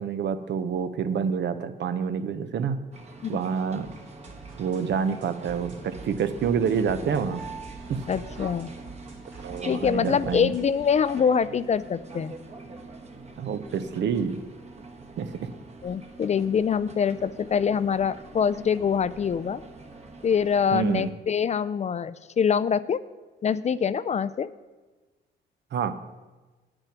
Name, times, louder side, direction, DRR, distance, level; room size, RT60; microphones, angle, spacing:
voice 1, 0.0-2.8 3.3-3.9 4.6-7.4 7.9-8.0 9.4-10.5 13.4-14.4 15.2-15.3 20.7-21.2 25.7-26.0, right 7 dB, 60° right, 11 dB, 0.8 m, -27 dB
sound 1, 2.9-21.1, right 3 dB, 35° right, 1.3 m, -44 dB
sound 2, 3.8-10.8, right 4 dB, 80° right, 3.0 m, -47 dB
voice 2, 8.1-8.7 9.7-12.3 15.8-19.6 20.2-23.0 23.4-24.5, left 7 dB, 35° left, 16 dB, 0.4 m, -24 dB
8.9 x 8.9 x 5.9 m, 1.2 s
cardioid pair, 90°, 20 cm